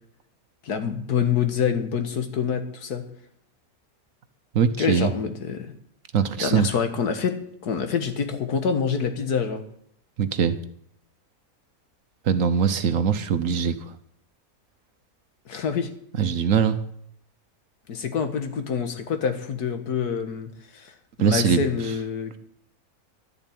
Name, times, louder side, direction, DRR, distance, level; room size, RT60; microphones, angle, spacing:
voice 1, 0.6-3.0 4.8-5.7 6.4-7.4 7.6-9.6 15.5-15.9 17.9-20.9 21.2-22.4, left 6 dB, 85° left, 7 dB, 1.9 m, -26 dB
voice 2, 4.5-5.1 6.1-6.7 10.2-10.6 12.3-13.8 16.2-16.8 21.2-21.6, right 7 dB, 60° right, 11 dB, 1.2 m, -21 dB
12.0 x 7.5 x 10.0 m, 0.68 s
omnidirectional pair, 1.6 m